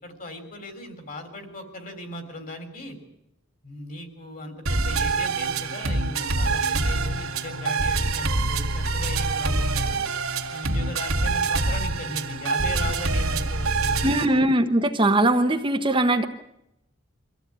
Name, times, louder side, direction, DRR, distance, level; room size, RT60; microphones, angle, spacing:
voice 1, 0.0-3.0 3.6-10.0 10.5-14.3, left 1 dB, 40° left, 6 dB, 3.8 m, -37 dB
sound 1, 4.7-14.3, right 3 dB, 90° right, 2.0 m, -25 dB
voice 2, 14.0-16.3, right 1 dB, 25° right, 5 dB, 1.0 m, -21 dB
24.5 x 15.0 x 9.0 m, 0.85 s
head